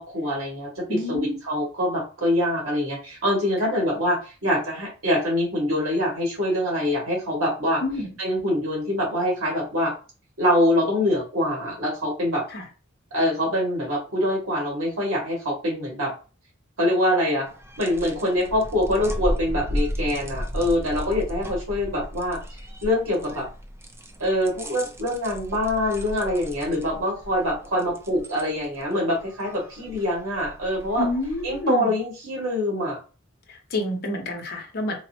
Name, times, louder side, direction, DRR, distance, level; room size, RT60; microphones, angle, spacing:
voice 1, 0.0-7.8 8.2-9.9 10.4-12.4 13.1-16.1 16.8-17.5 17.8-22.4 22.8-23.5 24.2-31.1 31.4-33.0, left 1 dB, 85° right, 1.8 m, -24 dB
voice 2, 0.9-1.4 7.8-8.1 12.5-12.6 31.0-31.9 33.5-35.0, left 1 dB, 50° left, 0.8 m, -28 dB
sound 1, 17.5-31.6, equal, 10° right, 0.4 m, -35 dB
4.0 x 2.1 x 2.8 m
head